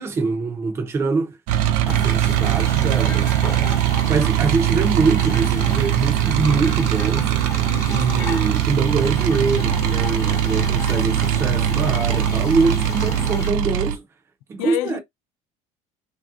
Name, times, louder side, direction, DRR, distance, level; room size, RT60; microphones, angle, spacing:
voice 1, 0.0-1.4 1.9-3.3 4.1-7.3 7.9-14.0 14.5-15.0, right 4 dB, 20° right, 0.5 m, -24 dB
sound 1, 1.5-13.9, right 11 dB, 80° right, 0.5 m, -21 dB
sound 2, 1.9-13.5, left 4 dB, 20° left, 0.7 m, -34 dB
voice 2, 2.4-2.9 14.6-15.0, left 13 dB, 80° left, 0.4 m, -29 dB
3.3 x 2.6 x 2.4 m
cardioid pair, 180°, 13 cm